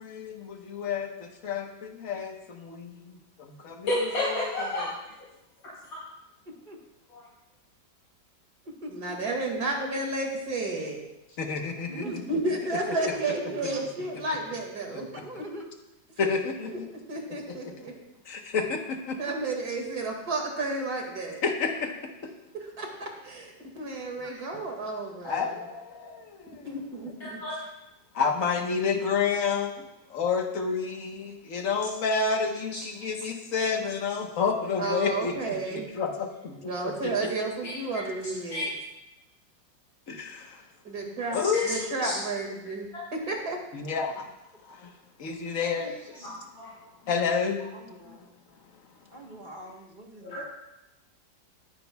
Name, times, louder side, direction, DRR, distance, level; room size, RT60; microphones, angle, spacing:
voice 1, 0.0-3.9 4.2-4.3 4.8-4.9 11.4-12.2 13.6-13.7 14.1-14.2 14.9-15.1 16.2-16.9 17.5-17.7 18.2-19.3 21.4-22.3 25.2-26.8 28.1-37.1 40.1-40.6 41.3-41.9 43.7-44.3 44.7-44.9 45.2-46.2 47.1-47.7 48.1-48.2, left 5 dB, 50° left, 3 dB, 1.4 m, -30 dB
voice 2, 3.9-4.9 7.1-7.2 9.2-9.4 27.2-27.5 33.6-33.7 37.6-37.7 38.5-38.6 41.5-41.8 42.0-42.1 46.1-46.7 50.2-50.5, left 1 dB, 70° left, -9 dB, 4.8 m, -31 dB
voice 3, 6.5-6.8 8.8-9.3 11.9-12.3 12.9-14.2 15.1-15.7 24.2-24.6 45.8-45.9 46.2-46.3 47.7-48.2 49.1-50.4, equal, 30° right, 1 dB, 1.2 m, -42 dB
voice 4, 8.9-11.0 12.0-15.1 16.2-16.3 16.7-16.8 17.1-17.9 19.2-21.4 22.5-25.6 26.6-27.4 34.8-35.9 36.7-38.7 40.8-41.4 41.6-43.6, right 2 dB, 50° right, 1 dB, 2.6 m, -32 dB
19.5 x 9.6 x 2.3 m, 0.91 s
omnidirectional pair, 2.0 m